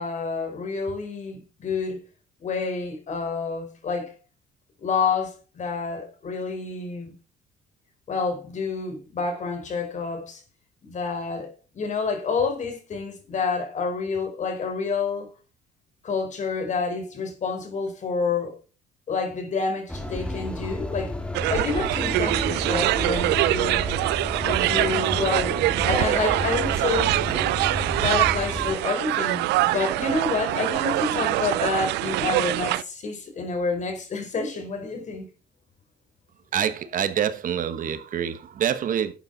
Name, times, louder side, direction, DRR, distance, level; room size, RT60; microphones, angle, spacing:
voice 1, 0.0-2.0 2.4-4.1 4.8-7.1 8.1-10.4 10.8-15.3 16.0-18.6 19.1-21.2 21.5-23.9 24.4-25.6 25.9-27.2 28.0-35.3, left 4 dB, 45° left, 4.5 m, -28 dB
sound 1, 19.9-28.7, left 1 dB, 5° left, 2.4 m, -32 dB
sound 2, 21.3-32.8, right 17 dB, 85° right, 0.6 m, -24 dB
voice 2, 36.5-39.1, right 9 dB, 55° right, 1.3 m, -26 dB
11.5 x 8.6 x 4.1 m
cardioid pair, 110°, 17 cm